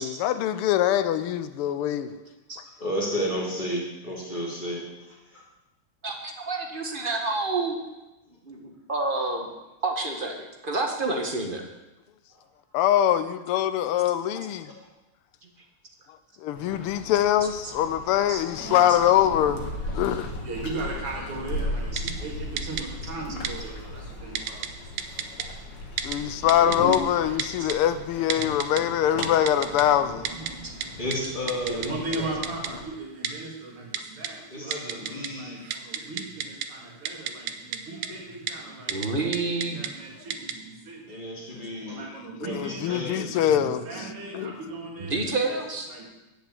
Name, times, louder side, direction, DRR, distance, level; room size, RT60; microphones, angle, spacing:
voice 1, 0.0-2.1 12.7-14.7 16.4-19.7 19.9-20.3 26.0-30.3 42.5-43.8 44.3-44.5, left 11 dB, 80° left, 12 dB, 1.6 m, -23 dB
voice 2, 2.8-5.4 12.3-12.4 14.3-14.8 31.0-32.4 34.5-35.6 41.1-42.0 42.4-43.3, equal, 20° left, -4 dB, 2.8 m, -33 dB
voice 3, 6.0-7.8 8.6-9.5 9.8-11.6 17.6-17.7 18.3-18.4 18.9-19.0 21.9-22.0 26.6-27.0 27.6-27.7 30.6-30.7 34.7-34.8 38.9-39.8 45.0-45.9, right 3 dB, 30° right, 2 dB, 1.2 m, -29 dB
sound 1, 16.6-32.8, left 1 dB, 55° left, 2.0 m, -37 dB
voice 4, 18.6-25.3 26.1-27.4 29.0-29.3 29.6-31.3 31.6-45.2 45.5-45.6 45.9-46.0, right 2 dB, 90° right, -1 dB, 3.2 m, -38 dB
Typing, 22.0-22.1 22.6-22.8 23.4-23.5 24.3-24.7 25.0-25.4 26.0-26.2 26.5-27.0 27.4-27.7 28.3-28.8 29.2-29.8 30.2-30.5 30.8-30.9 31.1-31.2 31.5-31.9 32.1-32.2 32.4-32.7 33.2-33.3 33.9-34.3 34.7-35.3 35.6-36.7 37.0-37.8 38.0-38.1 38.5-38.6 38.9-39.1 39.3-39.9 40.3-40.5, right 9 dB, 65° right, 1.2 m, -30 dB
10.5 x 6.1 x 8.4 m, 1.0 s
omnidirectional pair, 2.4 m